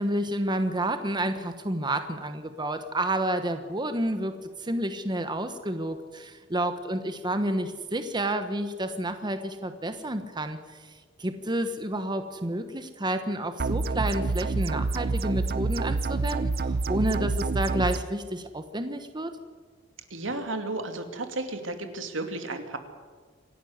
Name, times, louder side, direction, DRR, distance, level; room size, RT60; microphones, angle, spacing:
voice 1, 0.0-4.3 4.6-10.6 11.2-16.5 16.9-19.3, right 1 dB, 25° right, 9 dB, 1.2 m, -30 dB
sound 1, 13.6-18.0, right 3 dB, 50° right, 0.7 m, -27 dB
voice 2, 20.1-22.8, right 2 dB, 80° right, 6 dB, 2.6 m, -33 dB
26.0 x 11.5 x 9.6 m, 1.5 s
head